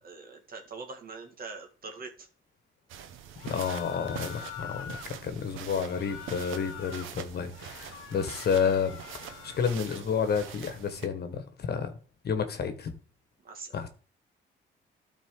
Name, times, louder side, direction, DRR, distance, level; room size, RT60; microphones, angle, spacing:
voice 1, 0.0-2.3 13.4-13.7, right 4 dB, 50° right, 2.1 m, -43 dB
sound 1, 2.9-11.1, right 9 dB, 85° right, 0.9 m, -44 dB
sound 2, 3.4-5.1 5.8-7.1 7.5-9.8, left 9 dB, 85° left, 0.9 m, -45 dB
voice 2, 3.4-12.0 12.2-12.9 13.7-13.9, left 6 dB, 55° left, 1.5 m, -30 dB
12.5 x 4.2 x 3.9 m
cardioid pair, 90°, 20 cm